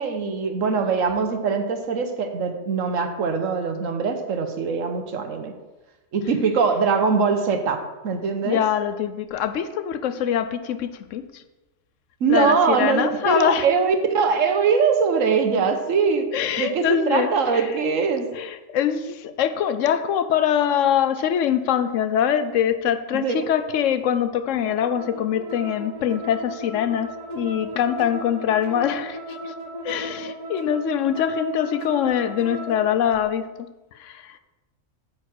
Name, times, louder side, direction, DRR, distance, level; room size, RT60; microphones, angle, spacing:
voice 1, 0.0-5.5 6.1-8.6 12.2-16.3 16.6-18.3 23.1-23.4, right 5 dB, 75° right, 6 dB, 1.3 m, -22 dB
voice 2, 8.4-11.4 12.3-13.7 16.3-17.8 18.3-29.5 29.8-33.5 34.0-34.4, left 9 dB, 75° left, 11 dB, 0.9 m, -23 dB
sound 1, 24.6-32.9, equal, 30° right, 1.4 m, -35 dB
9.0 x 4.7 x 6.1 m, 1.1 s
omnidirectional pair, 1.4 m